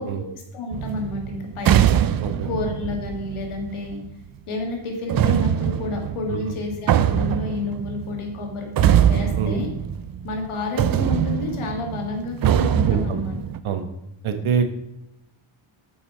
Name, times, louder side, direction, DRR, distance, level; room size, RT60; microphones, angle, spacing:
voice 1, 0.0-4.0 4.5-9.7 10.2-13.4, left 3 dB, 80° left, 2 dB, 2.1 m, -30 dB
sound 1, 0.7-4.1 5.1-10.5 10.8-13.6, right 10 dB, 45° right, 0.5 m, -22 dB
voice 2, 12.9-13.2 13.6-13.8 14.2-14.6, right 7 dB, 75° right, 7 dB, 1.2 m, -24 dB
7.2 x 5.6 x 5.6 m, 0.85 s
cardioid pair, 90°, 49 cm